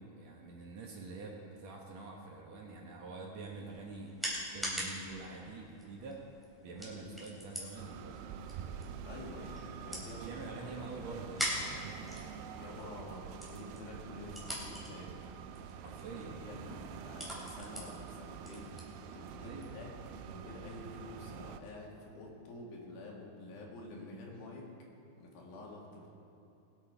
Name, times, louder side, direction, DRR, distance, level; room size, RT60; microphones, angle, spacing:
voice 1, 0.0-6.2 6.6-8.3 10.1-12.0 15.8-16.4 19.4-19.8, right 3 dB, 60° right, 0 dB, 2.2 m, -46 dB
sound 1, 3.4-19.8, equal, ahead, 2.5 m, -44 dB
sound 2, 7.8-21.6, right 7 dB, 85° right, 2.4 m, -47 dB
voice 2, 9.0-11.3 12.6-15.1 15.9-16.0 16.4-18.7 19.1-19.9 20.3-24.7 25.2-26.1, left 2 dB, 90° left, -2 dB, 3.9 m, -49 dB
21.0 x 8.6 x 4.6 m, 2.9 s
omnidirectional pair, 4.1 m